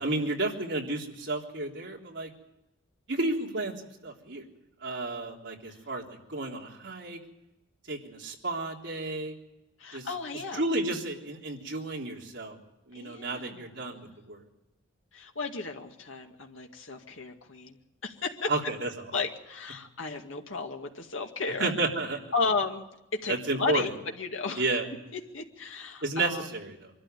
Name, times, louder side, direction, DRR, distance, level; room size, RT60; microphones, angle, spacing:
voice 1, 0.0-2.3 3.1-3.7 4.0-4.4 4.8-7.2 7.9-9.3 9.9-10.1 10.5-12.6 12.9-14.4 18.5-18.9 21.6-22.3 23.3-23.9 24.6-24.9 26.0-26.9, right 2 dB, 60° right, -1 dB, 3.7 m, -32 dB
voice 2, 9.8-10.6 12.9-14.1 15.1-17.8 18.0-18.5 19.1-21.7 22.3-24.8 25.1-26.5, left 4 dB, 75° left, 2 dB, 2.1 m, -34 dB
24.5 x 13.0 x 9.2 m, 0.91 s
head